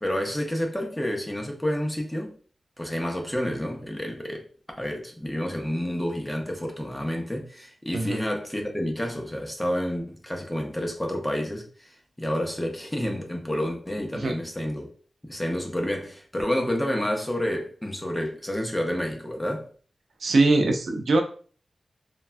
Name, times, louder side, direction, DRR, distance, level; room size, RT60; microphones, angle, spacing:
voice 1, 0.0-2.3 2.8-4.4 4.8-14.9 15.2-19.7, equal, 10° left, 0.5 m, -29 dB
voice 2, 20.2-21.2, right 2 dB, 75° right, 0.4 m, -21 dB
3.2 x 2.2 x 2.4 m
wide cardioid pair, 145°, 0 cm